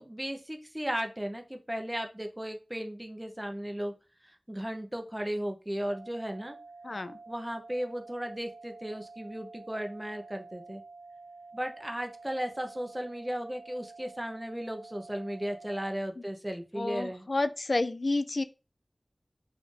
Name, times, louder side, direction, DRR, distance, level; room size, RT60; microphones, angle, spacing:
voice 1, 0.0-3.9 4.2-6.6 7.3-10.8 11.5-17.3, equal, 15° right, 0.7 m, -35 dB
sound 1, 5.9-15.9, right 3 dB, 70° right, 0.4 m, -50 dB
voice 2, 6.8-7.2 16.8-18.4, left 2 dB, 60° left, 0.3 m, -30 dB
4.1 x 2.5 x 3.2 m
wide cardioid pair, 55°, 0 cm